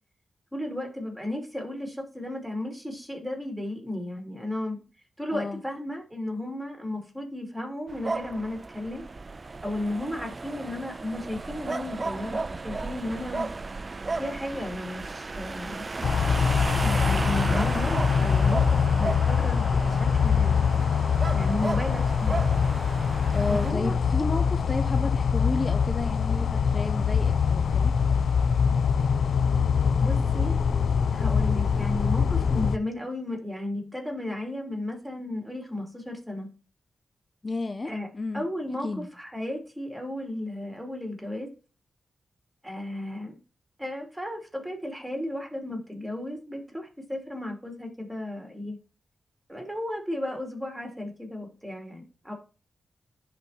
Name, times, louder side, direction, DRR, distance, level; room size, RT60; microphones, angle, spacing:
voice 1, 0.5-4.8 5.2-9.0 9.6-13.5 14.2-15.9 16.8-20.6 21.3-22.4 23.5-24.0 30.0-30.6 31.1-36.5 37.8-38.1 38.3-41.5 42.6-43.3 43.8-48.8 49.5-52.3, left 1 dB, 5° right, 2.8 m, -34 dB
sound 1, 7.9-23.7, right 3 dB, 35° right, 0.3 m, -34 dB
sound 2, 16.0-32.8, left 6 dB, 80° left, 0.3 m, -24 dB
voice 2, 23.3-27.9 37.4-38.4 38.8-39.1, left 3 dB, 35° left, 0.5 m, -32 dB
10.5 x 4.2 x 2.7 m
cardioid pair, 80°, 0 cm